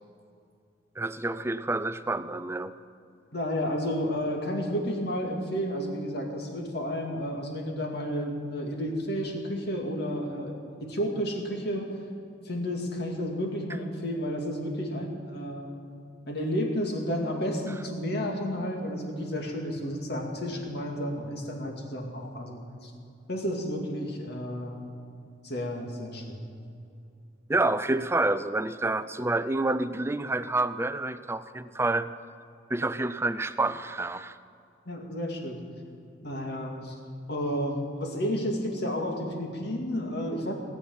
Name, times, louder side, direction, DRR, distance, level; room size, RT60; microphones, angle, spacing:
voice 1, 1.0-2.8 27.5-32.1 32.7-34.4, right 2 dB, 15° right, 13 dB, 0.4 m, -28 dB
voice 2, 3.3-10.5 10.8-12.0 12.4-15.8 16.3-22.9 23.3-24.8 25.4-26.5 34.9-35.6 36.2-36.9 37.3-40.5, equal, 60° left, 1 dB, 2.4 m, -31 dB
18.5 x 8.6 x 7.2 m, 2.5 s
head